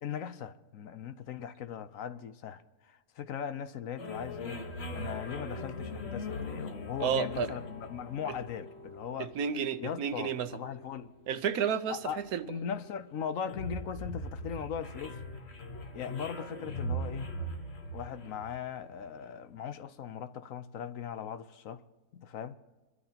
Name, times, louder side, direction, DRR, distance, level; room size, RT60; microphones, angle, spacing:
voice 1, 0.0-4.7 4.9-9.3 9.8-11.1 11.9-15.2 15.9-17.3 17.9-21.8 22.1-22.6, left 8 dB, 65° left, 1.1 m, -39 dB
sound 1, 4.0-19.4, equal, 45° left, 1.5 m, -41 dB
voice 2, 7.0-7.5 9.2-10.5 11.3-12.0 12.3-12.5, right 7 dB, 75° right, 1.3 m, -31 dB
26.5 x 12.5 x 2.8 m
omnidirectional pair, 1.6 m